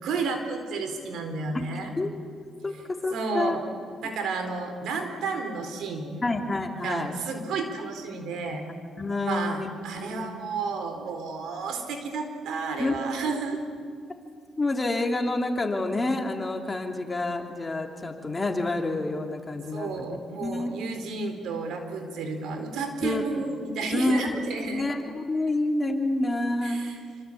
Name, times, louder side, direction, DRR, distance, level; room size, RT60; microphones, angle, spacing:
voice 1, 0.0-1.9 3.1-6.3 6.8-8.6 9.2-13.7 19.7-24.9 26.6-27.0, right 4 dB, 80° right, 6 dB, 4.2 m, -32 dB
voice 2, 3.0-3.6 6.2-7.1 9.0-9.7 10.0-10.3 12.8-12.9 14.6-20.7 23.0-23.2 23.9-24.4 24.7-26.8, left 2 dB, 25° left, 3 dB, 3.1 m, -28 dB
26.5 x 25.5 x 8.6 m, 2.1 s
cardioid pair, 90°, 0 cm